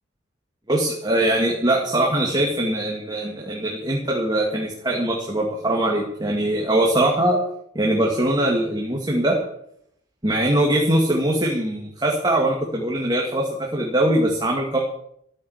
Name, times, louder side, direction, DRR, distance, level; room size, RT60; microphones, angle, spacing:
voice 1, 0.7-7.4 7.7-9.4 10.2-14.8, right 1 dB, 20° right, -1 dB, 2.3 m, -22 dB
14.5 x 9.5 x 8.5 m, 0.73 s
head